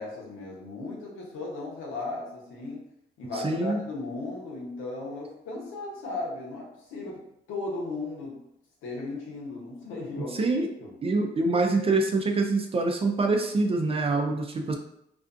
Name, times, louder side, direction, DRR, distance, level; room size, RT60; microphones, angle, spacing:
voice 1, 0.0-2.9 3.2-8.4 8.8-10.5 10.8-10.9, left 2 dB, 85° left, -3 dB, 0.8 m, -36 dB
voice 2, 3.3-3.8 10.2-10.7 11.0-14.8, right 3 dB, 30° right, 3 dB, 0.4 m, -25 dB
2.5 x 2.3 x 2.5 m, 0.78 s
cardioid pair, 90°, 20 cm